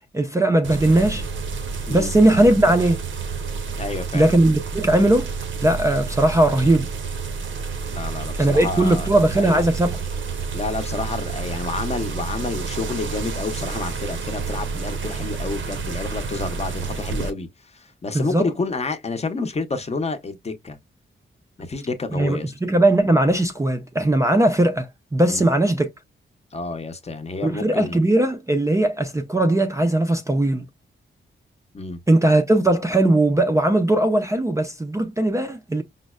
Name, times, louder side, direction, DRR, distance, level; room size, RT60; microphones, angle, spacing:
voice 1, 0.1-1.2 1.9-3.0 4.1-5.3 5.6-6.9 8.4-10.0 18.1-18.5 22.1-25.9 27.4-30.7 32.1-35.8, right 1 dB, 15° right, 0.4 m, -19 dB
sound 1, 0.6-17.3, right 5 dB, 70° right, 0.7 m, -30 dB
voice 2, 3.7-4.3 7.9-9.1 9.3-9.6 10.5-20.8 21.6-22.5 25.3-25.4 26.5-28.0 31.7-32.0, left 3 dB, 30° left, 0.6 m, -29 dB
5.1 x 2.0 x 2.3 m
wide cardioid pair, 125°, 21 cm